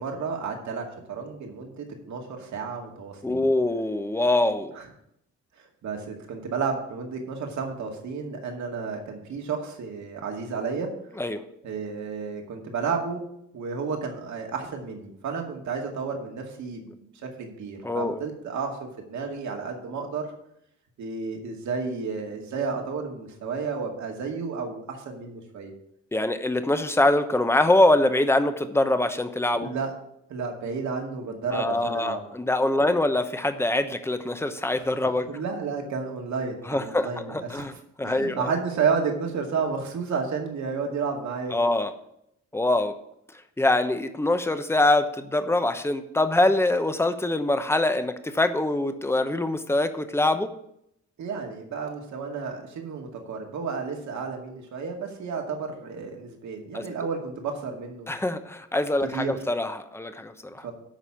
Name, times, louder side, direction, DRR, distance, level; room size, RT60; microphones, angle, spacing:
voice 1, 0.0-3.4 5.6-10.9 11.6-13.2 13.5-20.3 21.0-25.7 29.6-29.9 30.3-32.2 35.3-37.7 38.0-41.5 51.2-58.1 59.1-59.3 60.6-60.7, right 5 dB, 70° right, 2 dB, 2.2 m, -31 dB
voice 2, 3.2-4.8 11.2-11.4 17.8-18.2 26.1-29.7 31.5-35.3 36.7-38.5 41.5-41.9 42.5-42.9 43.6-50.5 56.7-56.8 58.1-60.7, left 2 dB, 10° left, 9 dB, 0.9 m, -24 dB
11.0 x 4.2 x 7.2 m, 0.76 s
cardioid pair, 90°, 30 cm